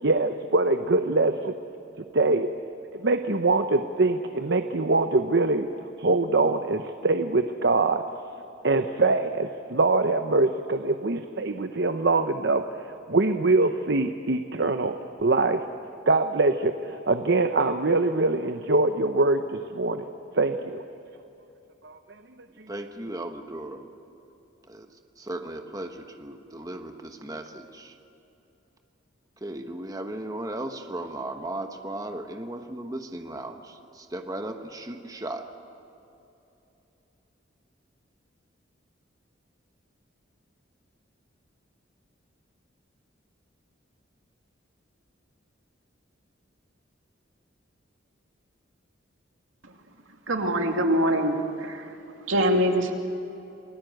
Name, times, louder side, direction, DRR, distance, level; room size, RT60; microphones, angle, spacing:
voice 1, 0.0-1.5 2.1-2.5 3.0-5.7 6.0-8.0 8.6-12.6 13.1-15.6 16.1-20.0 20.3-20.8 21.8-22.0 22.6-22.7, right 3 dB, 60° right, 8 dB, 0.9 m, -23 dB
voice 2, 22.7-23.9 24.7-24.9 25.2-28.0 29.4-35.5, right 1 dB, 20° right, 5 dB, 1.3 m, -36 dB
voice 3, 50.3-51.9 52.3-52.9, equal, 85° right, 3 dB, 2.5 m, -23 dB
28.5 x 20.0 x 7.9 m, 2.9 s
head